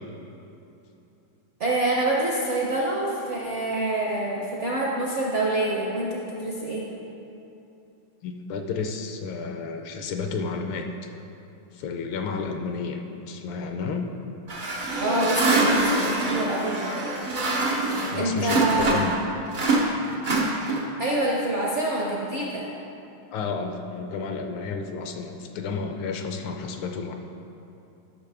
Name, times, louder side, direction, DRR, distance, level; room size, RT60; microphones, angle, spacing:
voice 1, 1.6-6.9 15.0-16.8 18.1-18.9 21.0-22.7, right 2 dB, 55° right, -4 dB, 0.8 m, -26 dB
voice 2, 8.2-10.9 11.8-13.0 13.3-14.1 18.1-19.1 23.3-27.2, left 5 dB, 75° left, 4 dB, 1.3 m, -31 dB
sound 1, 14.5-19.2 19.5-21.0, right 2 dB, 85° right, 0.4 m, -25 dB
12.0 x 6.1 x 3.4 m, 2.9 s
omnidirectional pair, 2.3 m